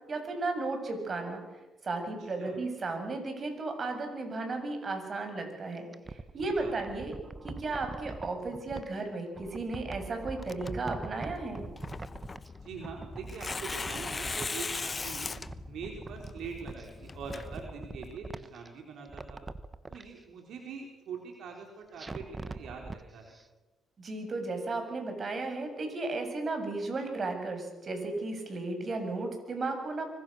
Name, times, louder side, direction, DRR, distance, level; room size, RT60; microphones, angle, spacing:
voice 1, 0.1-1.4 1.8-7.1 7.4-11.7 24.0-30.1, right 3 dB, 40° right, 5 dB, 7.2 m, -34 dB
voice 2, 2.2-2.6 6.3-6.7 12.6-15.3 15.7-19.4 19.9-23.4, right 5 dB, 75° right, 1 dB, 4.6 m, -43 dB
sound 1, 5.7-8.9 9.4-12.6 12.8-14.7 15.0-16.9 17.2-18.7 19.1-20.0 22.0-23.0 23.3-23.4, right 3 dB, 25° right, 1.4 m, -43 dB
Tearing, 10.4-18.2, left 4 dB, 30° left, 1.1 m, -40 dB
25.5 x 25.0 x 6.7 m, 1.2 s
cardioid pair, 90°, 0 cm